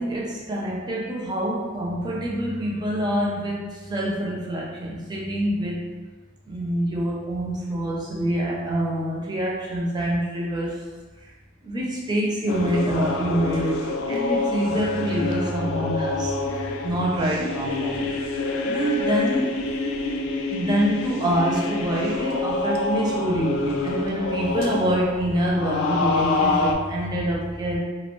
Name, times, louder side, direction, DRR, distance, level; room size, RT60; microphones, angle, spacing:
voice 1, 0.0-5.8 6.5-10.8 11.6-16.4 16.8-18.1 18.6-19.6 20.5-27.8, right 1 dB, 20° right, -3 dB, 0.4 m, -26 dB
sound 1, 12.5-26.7, left 3 dB, 65° left, 0.3 m, -27 dB
2.2 x 2.1 x 3.0 m, 1.3 s
head